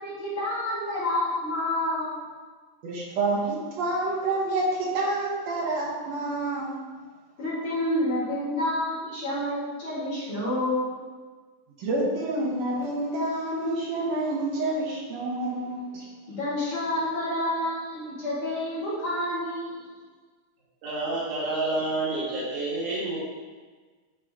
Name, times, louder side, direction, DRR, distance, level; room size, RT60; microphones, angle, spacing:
voice 1, 0.0-2.2 7.4-10.9 16.3-19.9, left 1 dB, 45° left, -10 dB, 2.3 m, -29 dB
voice 2, 2.8-6.8 11.8-15.9, right 2 dB, 75° right, -3 dB, 1.6 m, -28 dB
voice 3, 20.8-23.2, right 2 dB, 90° right, -8 dB, 3.7 m, -29 dB
9.7 x 3.7 x 3.6 m, 1.4 s
omnidirectional pair, 4.0 m